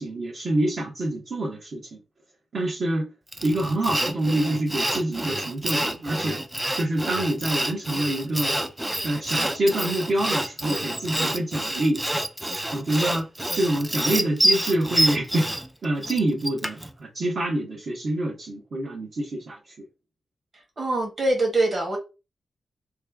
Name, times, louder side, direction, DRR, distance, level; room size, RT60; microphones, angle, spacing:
voice 1, 0.0-1.8 2.5-3.1 3.4-6.5 6.8-8.6 9.0-12.0 12.7-13.3 13.5-15.5 15.8-19.8, right 1 dB, 55° right, 1.2 m, -26 dB
Sawing, 3.3-16.9, right 1 dB, 10° right, 0.3 m, -27 dB
voice 2, 20.8-22.0, right 2 dB, 35° right, 1.5 m, -23 dB
3.2 x 2.3 x 3.5 m
wide cardioid pair, 145°, 0 cm